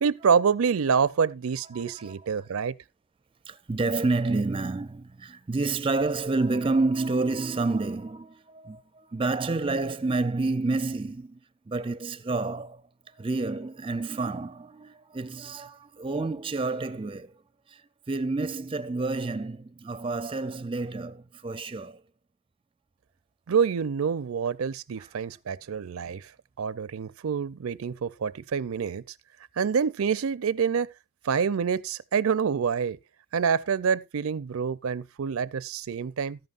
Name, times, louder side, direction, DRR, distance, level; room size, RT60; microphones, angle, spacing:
voice 1, 0.0-2.7 23.5-26.3 26.6-29.0 29.6-30.9 31.2-33.0 33.3-36.4, right 6 dB, 75° right, 0.5 m, -27 dB
voice 2, 1.7-2.4 3.5-11.4 11.7-12.8 13.2-17.4 17.7-17.8 18.1-22.0 25.0-25.1, right 3 dB, 25° right, 0.5 m, -29 dB
13.5 x 11.0 x 2.5 m
head